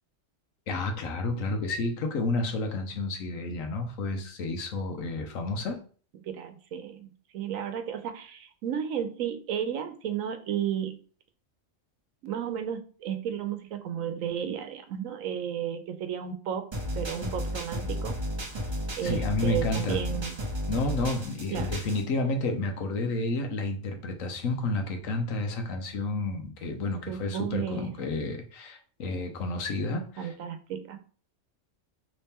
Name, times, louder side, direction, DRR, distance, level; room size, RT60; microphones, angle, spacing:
voice 1, 0.7-5.8 19.0-20.0 20.7-30.3, left 2 dB, 85° left, 4 dB, 1.2 m, -30 dB
voice 2, 6.2-11.0 12.2-16.7 16.9-18.2 19.0-20.4 21.5-21.7 27.1-27.9 30.2-31.0, right 9 dB, 85° right, 8 dB, 1.1 m, -33 dB
sound 1, 16.7-22.0, equal, 25° right, 0.6 m, -33 dB
4.2 x 3.3 x 3.5 m, 0.42 s
omnidirectional pair, 1.4 m